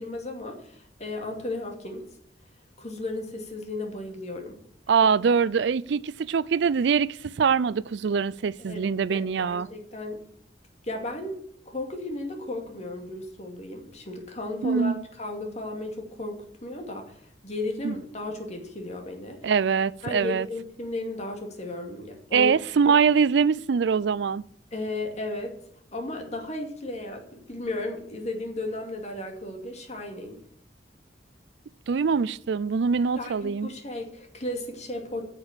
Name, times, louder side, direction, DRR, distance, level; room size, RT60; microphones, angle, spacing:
voice 1, 0.0-2.0 2.8-4.6 8.6-10.2 10.8-17.2 17.4-19.5 20.0-22.5 24.7-25.5 25.9-30.4 33.2-35.2, left 2 dB, 35° left, 2.4 m, -35 dB
voice 2, 4.9-9.7 14.6-15.0 17.8-18.0 19.4-20.5 22.3-24.4 31.9-33.7, right 6 dB, 65° right, 0.4 m, -23 dB
10.5 x 6.9 x 8.8 m
head